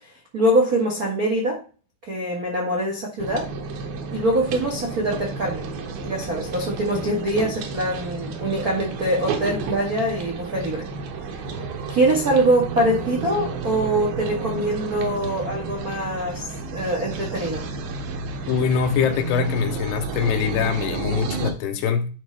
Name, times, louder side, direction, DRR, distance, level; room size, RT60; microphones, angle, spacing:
voice 1, 0.3-1.6 2.0-3.5 4.1-5.7 6.0-10.8 11.9-17.6, right 1 dB, 90° right, 0.8 m, -23 dB
sound 1, 3.2-21.5, right 4 dB, 70° right, 2.6 m, -31 dB
voice 2, 18.5-22.1, left 7 dB, 90° left, 3.0 m, -23 dB
11.0 x 3.9 x 3.3 m
omnidirectional pair, 4.6 m